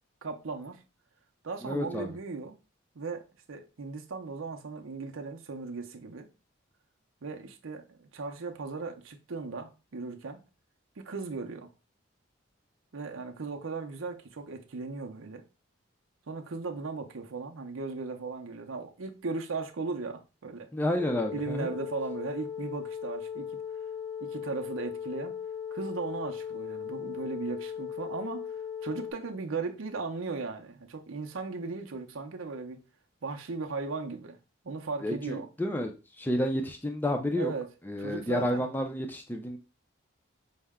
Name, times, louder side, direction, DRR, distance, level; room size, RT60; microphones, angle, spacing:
voice 1, 0.2-0.8 1.4-2.6 2.9-6.3 7.2-10.4 11.0-11.7 12.9-15.4 16.3-20.7 21.3-23.5 24.2-25.4 25.7-28.5 28.8-32.8 33.2-34.4 34.6-35.5 37.4-37.7 38.0-38.7, right 4 dB, 90° right, 0.6 m, -37 dB
voice 2, 1.6-2.1 20.7-21.7 35.0-35.9 36.2-37.5 37.8-39.6, left 1 dB, 10° left, 0.4 m, -30 dB
sound 1, 20.9-29.1, left 7 dB, 85° left, 0.9 m, -38 dB
5.5 x 2.1 x 3.5 m
head